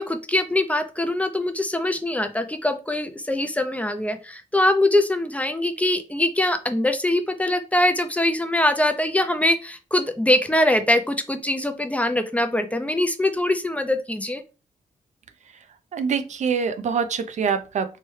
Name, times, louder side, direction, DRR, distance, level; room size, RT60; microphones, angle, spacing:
voice 1, 0.0-14.4, left 1 dB, 10° left, 8 dB, 0.4 m, -23 dB
voice 2, 15.9-18.0, right 6 dB, 60° right, 10 dB, 0.4 m, -25 dB
3.1 x 2.2 x 3.1 m, 0.32 s
cardioid pair, 75°, 14 cm